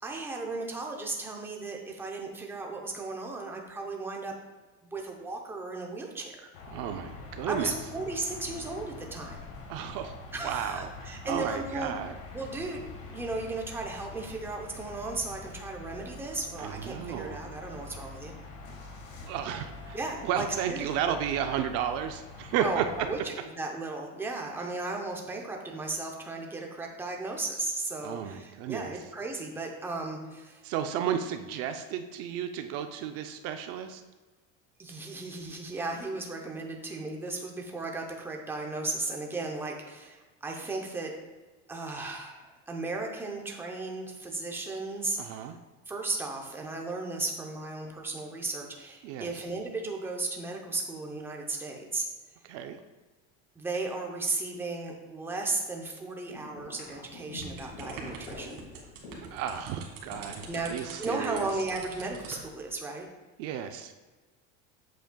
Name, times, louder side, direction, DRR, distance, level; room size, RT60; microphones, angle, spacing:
voice 1, 0.0-4.3 4.8-6.5 7.5-9.5 10.3-11.9 12.3-18.3 19.9-21.1 22.6-30.6 34.8-41.1 41.7-45.5 45.9-52.1 53.6-58.6 60.5-60.7 61.0-63.1, right 3 dB, 5° right, 1 dB, 0.6 m, -35 dB
sound 1, 6.5-23.2, left 3 dB, 85° left, 1.5 m, -45 dB
voice 2, 6.7-7.7 9.7-10.2 10.4-12.1 16.6-17.4 19.2-20.0 20.2-22.8 28.0-28.9 30.6-34.0 45.2-45.6 49.0-49.3 52.5-52.8 59.3-61.5 63.4-63.9, right 9 dB, 50° right, 7 dB, 0.5 m, -33 dB
sound 2, 56.3-59.4 59.9-61.3, left 3 dB, 70° left, 1.8 m, -45 dB
sound 3, 57.4-62.5, right 5 dB, 70° right, 1.7 m, -45 dB
8.0 x 7.4 x 2.2 m, 1.3 s
cardioid pair, 180°, 31 cm